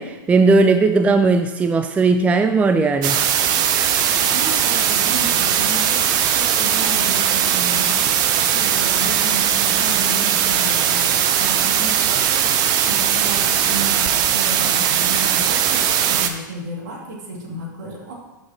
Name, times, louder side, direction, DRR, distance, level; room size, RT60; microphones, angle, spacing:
voice 1, 0.0-3.2, right 3 dB, 10° right, 8 dB, 0.4 m, -17 dB
sound 1, 3.0-16.3, right 9 dB, 40° right, 0.7 m, -19 dB
voice 2, 3.4-6.0 6.3-7.9 8.2-12.5 12.8-18.1, right 2 dB, 60° right, -2 dB, 2.6 m, -33 dB
12.5 x 5.7 x 3.0 m, 1.1 s
figure-of-eight pair, 100°, 11 cm